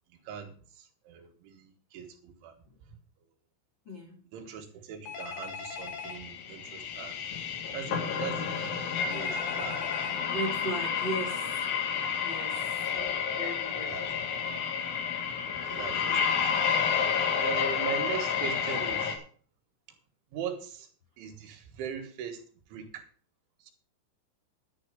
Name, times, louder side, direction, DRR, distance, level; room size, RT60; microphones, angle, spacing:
voice 1, 0.3-2.6 4.3-7.2 7.7-8.8 9.0-10.2 12.9-13.1 13.9-14.4 15.7-16.6 17.4-19.2 20.3-20.9 21.2-22.4 22.7-23.1 23.6-23.7, right 8 dB, 75° right, 3.7 m, -40 dB
voice 2, 3.8-4.2 10.3-11.6 12.2-12.8 13.3-14.2, right 1 dB, 30° left, 3.0 m, -37 dB
Telephone, 5.1-6.2 9.1-10.2, left 6 dB, 85° left, 4.6 m, -39 dB
sound 1, 6.0-19.2, left 7 dB, 70° left, 4.0 m, -30 dB
11.0 x 10.5 x 5.1 m
omnidirectional pair, 5.9 m